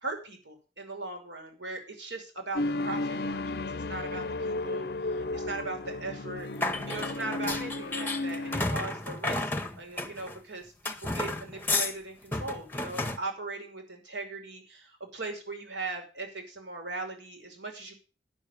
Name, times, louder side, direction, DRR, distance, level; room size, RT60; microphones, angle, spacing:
voice 1, 0.0-6.5 6.9-9.5 9.8-17.9, right 3 dB, 80° right, 3 dB, 2.8 m, -39 dB
sound 1, 2.5-8.6, left 2 dB, 55° left, 0.5 m, -33 dB
sound 2, 6.6-10.4 10.9-11.9 12.3-13.2, left 2 dB, 10° left, 0.9 m, -32 dB
10.5 x 6.3 x 6.9 m, 0.35 s
head